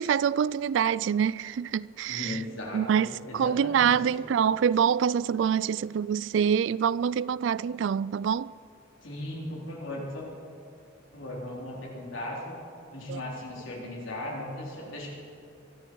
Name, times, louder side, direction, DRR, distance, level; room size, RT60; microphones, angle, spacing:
voice 1, 0.0-2.4 2.7-3.1 3.3-8.5 13.1-13.2, right 8 dB, 70° right, 0.3 m, -25 dB
voice 2, 2.1-4.2 9.0-10.3 11.1-12.6 12.9-15.1, left 1 dB, 85° left, 3.8 m, -37 dB
23.0 x 13.5 x 4.7 m
head